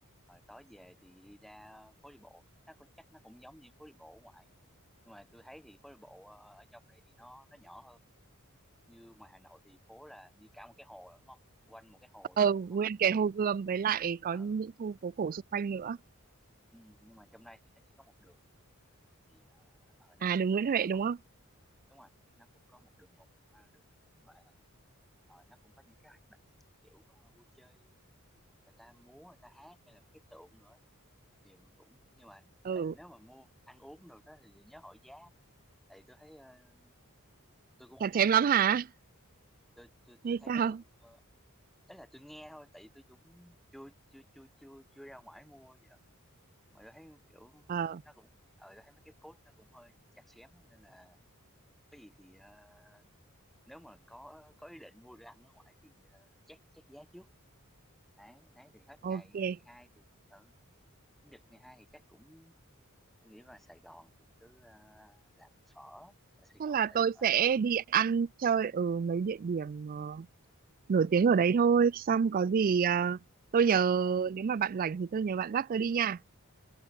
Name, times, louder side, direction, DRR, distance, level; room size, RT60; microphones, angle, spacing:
voice 1, 0.3-4.5 5.0-8.0 8.9-11.4 11.7-12.4 14.3-14.6 16.7-18.4 19.3-20.3 20.5-21.0 21.9-22.1 22.4-23.9 24.2-24.5 25.3-26.4 26.8-27.9 28.6-30.8 31.4-35.3 35.9-37.0 37.8-38.7 39.8-40.8 41.0-41.2 41.9-46.0 46.7-51.2 51.9-53.0 53.6-57.3 58.2-60.5 61.2-62.5 63.2-67.3, equal, ahead, 1.6 m, -56 dB
voice 2, 12.4-16.0 20.2-21.2 32.7-32.9 38.0-38.9 40.2-40.8 47.7-48.0 59.0-59.6 66.6-70.3 70.9-73.2 73.5-76.2, right 7 dB, 40° right, 0.3 m, -28 dB
head